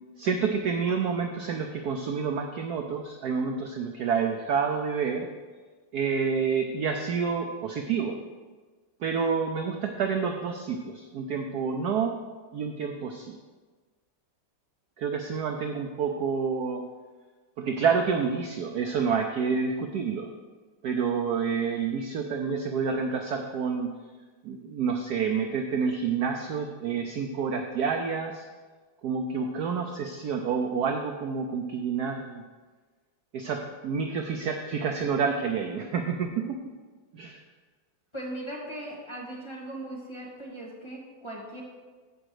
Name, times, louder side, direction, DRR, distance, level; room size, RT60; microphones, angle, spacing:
voice 1, 0.2-5.3 5.9-8.2 9.0-12.2 12.5-13.4 15.0-16.8 17.6-20.3 20.8-23.9 24.4-28.4 29.0-32.4 33.3-36.6 37.1-37.4, right 6 dB, 65° right, 4 dB, 1.0 m, -28 dB
voice 2, 38.1-41.6, right 1 dB, 15° left, -4 dB, 2.0 m, -38 dB
15.0 x 5.2 x 4.9 m, 1.4 s
omnidirectional pair, 2.3 m